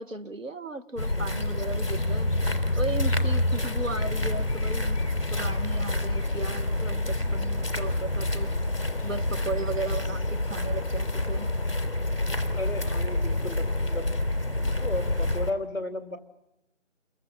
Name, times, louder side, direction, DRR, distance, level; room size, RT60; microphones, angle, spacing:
voice 1, 0.0-2.3 2.7-8.5 9.0-11.5, right 2 dB, 80° right, 11 dB, 1.4 m, -36 dB
sound 1, 1.0-15.5, left 1 dB, 50° left, 3.2 m, -27 dB
voice 2, 12.5-14.1 14.6-16.2, left 2 dB, 25° left, 5 dB, 3.2 m, -34 dB
29.5 x 23.5 x 5.9 m, 0.86 s
figure-of-eight pair, 180°, 38 cm